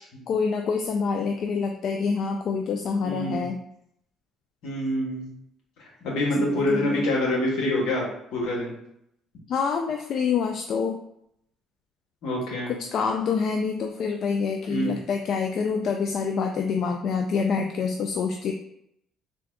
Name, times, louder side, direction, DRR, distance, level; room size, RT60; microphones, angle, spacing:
voice 1, 0.3-3.6 6.4-7.1 9.5-11.0 12.7-18.5, left 5 dB, 60° left, 4 dB, 0.3 m, -26 dB
voice 2, 3.0-3.5 4.6-5.3 5.8-8.7 12.2-12.7 14.7-15.0, left 1 dB, 80° left, -2 dB, 1.3 m, -26 dB
3.7 x 2.4 x 3.4 m, 0.74 s
cardioid pair, 90°, 0 cm